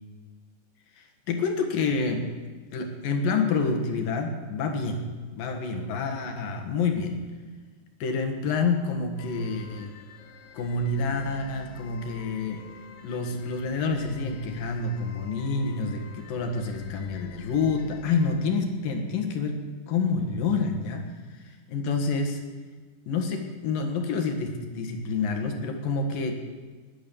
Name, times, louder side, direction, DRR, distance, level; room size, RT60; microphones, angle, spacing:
voice 1, 1.0-2.3 2.7-7.2 8.0-9.9 10.5-12.6 13.0-19.6 19.9-22.4 23.1-26.4, left 4 dB, 60° left, 4 dB, 3.0 m, -28 dB
sound 1, 9.2-18.3, left 4 dB, 80° left, 3.3 m, -47 dB
20.0 x 10.0 x 7.1 m, 1.4 s
omnidirectional pair, 4.9 m